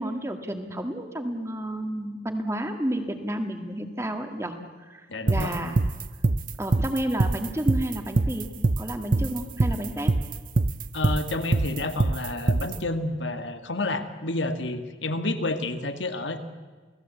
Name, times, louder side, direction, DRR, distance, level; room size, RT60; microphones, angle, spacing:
voice 1, 0.0-4.6 4.9-5.8 6.6-8.5 8.8-10.1, right 1 dB, 15° right, 6 dB, 2.0 m, -31 dB
voice 2, 5.1-5.6 10.9-16.4, left 2 dB, 80° left, 8 dB, 2.1 m, -30 dB
sound 1, 5.3-12.8, right 2 dB, 45° right, 0.7 m, -23 dB
29.0 x 18.5 x 8.3 m, 1.4 s
head